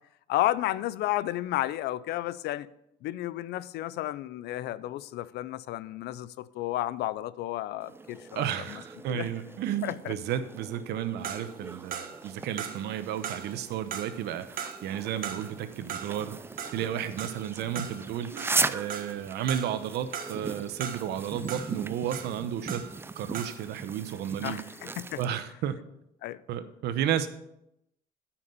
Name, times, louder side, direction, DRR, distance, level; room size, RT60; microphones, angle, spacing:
voice 1, 0.3-2.7 3.0-8.8 9.1-9.3 9.8-10.1 24.4-25.2 26.2-26.4, left 15 dB, 75° left, 0.5 m, -32 dB
sound 1, 7.8-25.3, right 3 dB, 15° right, 0.4 m, -38 dB
voice 2, 8.3-14.6 14.8-16.3 16.7-18.3 18.6-22.8 23.2-24.6 25.2-25.8 26.5-27.3, right 10 dB, 80° right, 0.9 m, -32 dB
sound 2, 11.2-23.1 23.3-23.7, right 8 dB, 55° right, 1.1 m, -40 dB
9.4 x 5.9 x 6.7 m
cardioid pair, 110°, 17 cm